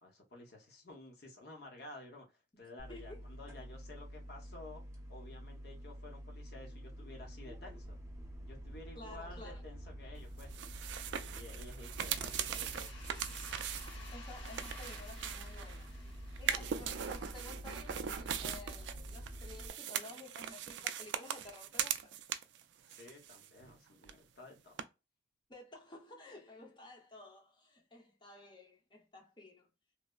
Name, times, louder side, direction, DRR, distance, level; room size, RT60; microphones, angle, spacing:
voice 1, 0.0-4.8 5.1-8.0 8.4-10.8 11.1-13.4 16.6-16.9 22.9-24.8, left 2 dB, 55° left, 0.8 m, -53 dB
sound 1, 2.8-19.7, equal, 15° right, 0.7 m, -48 dB
voice 2, 2.9-3.2 8.9-9.6 14.1-16.0 16.4-22.2 25.5-29.7, left 2 dB, 25° left, 0.7 m, -53 dB
sound 2, 10.4-15.9 16.3-22.6 22.9-23.8 24.0-24.1 24.8-24.9, right 9 dB, 75° right, 0.3 m, -40 dB
sound 3, 12.1-17.6, left 4 dB, 85° left, 1.5 m, -55 dB
3.1 x 2.0 x 2.2 m
head